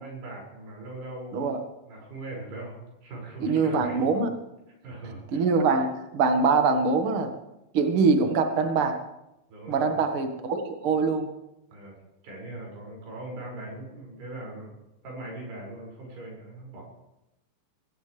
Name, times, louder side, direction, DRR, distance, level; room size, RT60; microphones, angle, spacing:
voice 1, 0.0-1.5 1.9-4.2 4.8-5.4 9.5-9.9 11.7-11.9 12.2-16.8, right 2 dB, 60° right, -3 dB, 8.2 m, -40 dB
voice 2, 3.4-4.3 5.3-7.3 7.7-8.9 9.7-11.3, right 4 dB, 85° right, 5 dB, 1.2 m, -23 dB
23.5 x 16.0 x 3.5 m, 0.90 s
omnidirectional pair, 5.4 m